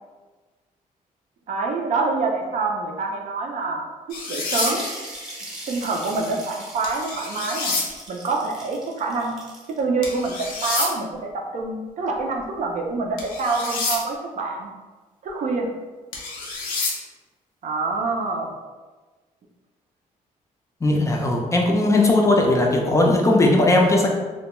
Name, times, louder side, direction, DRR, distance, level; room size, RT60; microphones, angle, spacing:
voice 1, 1.5-4.9 5.7-7.8 8.1-9.3 9.8-14.7 15.2-15.7 17.6-18.5, right 3 dB, 60° right, 1 dB, 0.4 m, -26 dB
sound 1, 4.1-4.7 6.8-7.8 10.0-10.9 13.2-14.0 16.1-16.9, left 3 dB, 85° left, 0.6 m, -27 dB
sound 2, 4.4-9.8, right 1 dB, 5° right, 0.7 m, -39 dB
voice 2, 20.8-24.1, left 2 dB, 20° left, 0 dB, 0.4 m, -18 dB
2.2 x 2.1 x 2.9 m, 1.3 s
cardioid pair, 100°, 15 cm